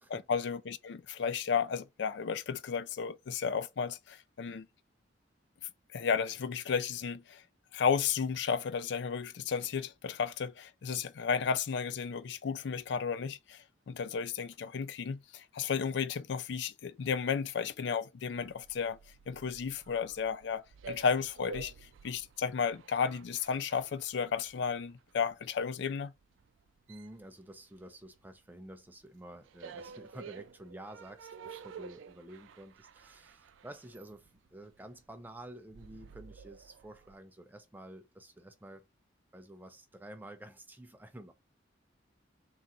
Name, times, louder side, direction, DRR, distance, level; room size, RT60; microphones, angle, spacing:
voice 1, 0.1-4.7 5.9-7.4 7.7-19.0 19.3-21.7 22.0-26.1, left 6 dB, 60° left, 0.4 m, -33 dB
sound 1, 18.4-28.4 28.7-37.1, right 5 dB, 75° right, 0.4 m, -51 dB
voice 2, 26.9-38.9 39.3-41.3, right 1 dB, 10° right, 0.4 m, -50 dB
3.8 x 2.5 x 4.0 m
head